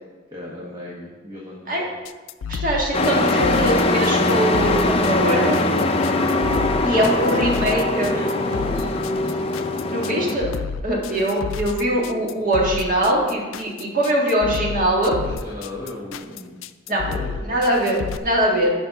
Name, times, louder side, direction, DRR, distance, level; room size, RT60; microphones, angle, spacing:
voice 1, 0.3-1.9 7.1-9.5 10.9-11.2 15.2-16.5 16.9-17.7, left 1 dB, 25° right, -5 dB, 1.2 m, -36 dB
sound 1, 2.1-18.2, left 5 dB, 85° left, 0.4 m, -31 dB
voice 2, 2.5-5.6 6.8-8.1 9.9-10.5 10.8-15.2 16.9-17.0 17.4-18.7, right 1 dB, 45° right, -2 dB, 1.7 m, -22 dB
Truck, 2.9-10.4, left 2 dB, 30° left, 0.5 m, -21 dB
7.0 x 5.2 x 5.8 m, 1.4 s
head